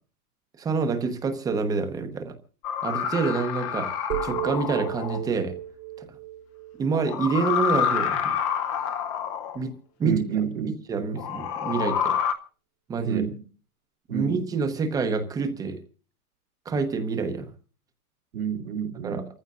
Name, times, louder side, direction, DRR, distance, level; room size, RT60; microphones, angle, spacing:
voice 1, 0.6-2.4 2.8-3.9 4.2-5.5 6.0-6.1 6.8-8.3 9.5-9.7 10.0-10.2 10.9-12.1 12.9-13.2 14.1-15.8 16.6-17.5 19.0-19.2, right 4 dB, 10° right, 0.9 m, -27 dB
sound 1, 2.6-5.2 6.9-9.6 11.2-12.3, left 8 dB, 25° left, 0.7 m, -28 dB
sound 2, 4.1-8.2, right 12 dB, 50° right, 1.8 m, -35 dB
voice 2, 10.0-10.8 13.0-13.4 14.1-14.4 18.3-19.3, right 8 dB, 90° right, 2.8 m, -29 dB
29.0 x 15.0 x 2.5 m
hypercardioid pair, 160°, 43 cm